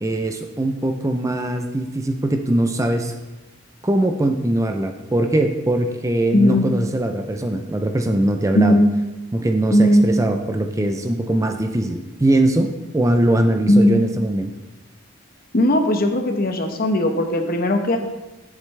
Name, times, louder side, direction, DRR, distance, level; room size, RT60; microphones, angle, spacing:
voice 1, 0.0-3.1 3.8-8.8 9.3-12.7 12.9-14.5, right 1 dB, 15° right, 5 dB, 0.4 m, -21 dB
voice 2, 6.3-6.7 8.5-8.9 9.7-10.0 13.7-14.0 15.5-18.0, equal, 45° left, 5 dB, 0.9 m, -17 dB
11.0 x 7.4 x 3.2 m, 1.1 s
head